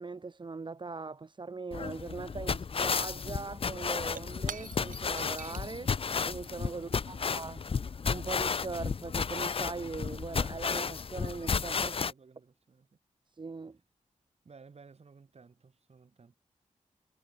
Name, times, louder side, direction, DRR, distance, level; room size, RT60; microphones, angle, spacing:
voice 1, 0.0-11.9 13.3-13.8, right 4 dB, 35° right, 1.0 m, -40 dB
sound 1, 1.7-12.1, left 5 dB, 45° left, 0.6 m, -33 dB
Shatter / Crushing, 3.9-8.3, right 7 dB, 85° right, 1.9 m, -49 dB
voice 2, 6.7-7.4 11.8-13.0 14.4-16.3, right 5 dB, 50° right, 2.8 m, -57 dB
wide cardioid pair, 100°, 13 cm